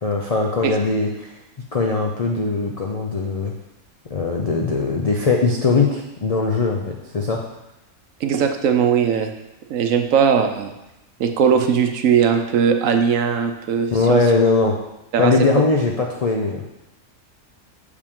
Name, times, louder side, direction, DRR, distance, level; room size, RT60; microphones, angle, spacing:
voice 1, 0.0-1.3 1.7-3.5 4.1-7.4 13.9-14.7 15.2-16.6, left 4 dB, 60° left, 0 dB, 0.3 m, -20 dB
voice 2, 8.2-9.3 9.7-10.7 11.2-14.2 15.1-15.3, right 7 dB, 70° right, 5 dB, 1.0 m, -19 dB
6.6 x 5.0 x 3.6 m, 0.91 s
omnidirectional pair, 1.5 m